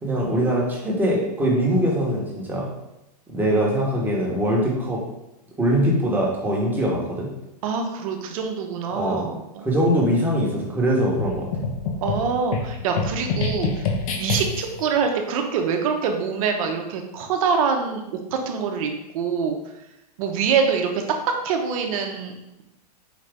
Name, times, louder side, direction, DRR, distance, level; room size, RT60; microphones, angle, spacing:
voice 1, 0.0-2.7 3.3-5.0 5.6-7.3 8.9-9.2 9.6-11.4, equal, 10° right, -4 dB, 1.0 m, -22 dB
voice 2, 7.6-9.6 12.0-13.9 14.2-18.0 18.3-19.6 20.2-22.6, right 6 dB, 55° right, 4 dB, 0.8 m, -25 dB
sound 1, 11.2-14.8, left 4 dB, 55° left, 0.8 m, -27 dB
5.0 x 2.7 x 3.4 m, 0.91 s
hypercardioid pair, 135°, 21 cm